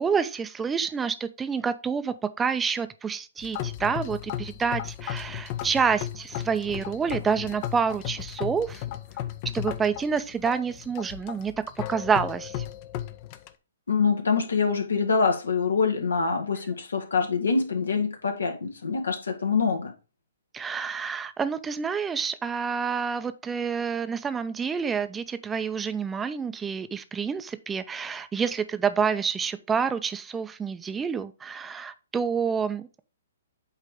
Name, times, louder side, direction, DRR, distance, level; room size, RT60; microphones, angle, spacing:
voice 1, 0.0-8.8 9.5-11.5 11.9-12.6 20.5-33.0, right 6 dB, 15° right, 11 dB, 0.6 m, -28 dB
sound 1, 3.4-13.5, left 12 dB, 40° left, 0.7 m, -35 dB
voice 2, 13.9-19.9, left 5 dB, 80° left, 4 dB, 1.8 m, -25 dB
8.3 x 3.3 x 5.0 m, 0.33 s
hypercardioid pair, 130°, 0 cm